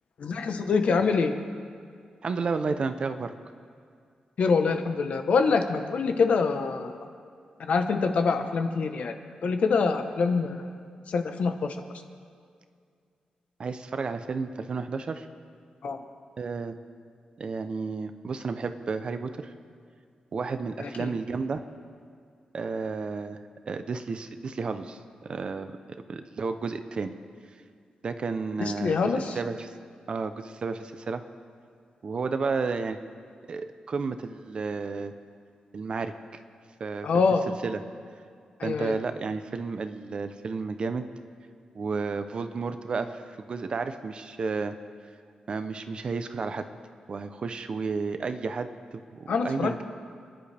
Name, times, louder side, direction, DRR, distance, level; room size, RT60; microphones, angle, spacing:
voice 1, 0.2-1.3 4.4-6.9 7.6-9.1 9.4-10.7 11.1-11.8 15.8-16.0 20.8-21.1 28.6-29.3 37.0-37.4 38.6-38.9 49.3-49.8, left 4 dB, 60° left, 6 dB, 1.1 m, -25 dB
voice 2, 2.2-3.3 13.6-15.3 16.4-16.8 17.4-19.5 20.3-21.6 22.5-23.4 23.7-25.0 25.3-25.7 26.1-27.1 28.0-29.7 30.1-31.2 32.0-33.0 33.5-35.1 35.7-36.1 36.8-37.1 37.6-37.8 38.6-41.1 41.7-43.2 43.5-44.7 45.5-46.7 47.1-49.8, right 4 dB, 40° right, 9 dB, 0.7 m, -32 dB
28.5 x 11.0 x 3.4 m, 2.2 s
wide cardioid pair, 165°, 2 cm